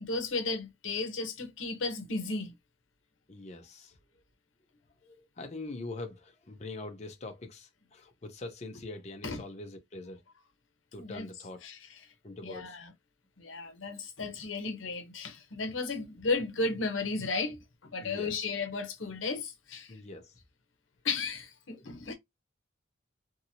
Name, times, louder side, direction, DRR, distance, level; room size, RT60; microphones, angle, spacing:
voice 1, 0.0-2.5 9.2-9.4 11.0-11.3 11.6-11.9 12.4-12.9 13.4-19.9 21.0-22.1, left 3 dB, 85° left, 0.8 m, -34 dB
voice 2, 3.3-4.0 5.0-10.2 10.9-11.6 12.2-12.8 18.0-18.4 19.9-20.4 21.7-21.8, left 2 dB, 35° left, 0.5 m, -43 dB
2.7 x 2.6 x 2.8 m
head